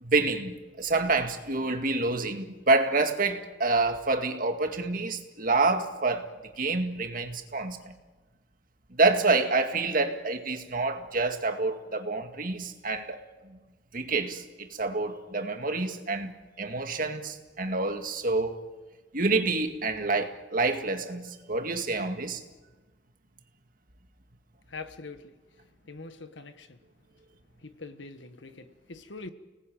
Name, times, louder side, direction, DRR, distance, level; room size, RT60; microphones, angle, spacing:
voice 1, 0.0-6.3 6.6-7.9 8.9-13.2 13.9-16.3 16.6-18.6 19.1-22.4, right 3 dB, 50° right, 2.1 m, -27 dB
voice 2, 24.7-25.3 25.9-26.7 27.6-29.3, left 3 dB, 80° left, 1.7 m, -43 dB
30.0 x 19.5 x 9.0 m
head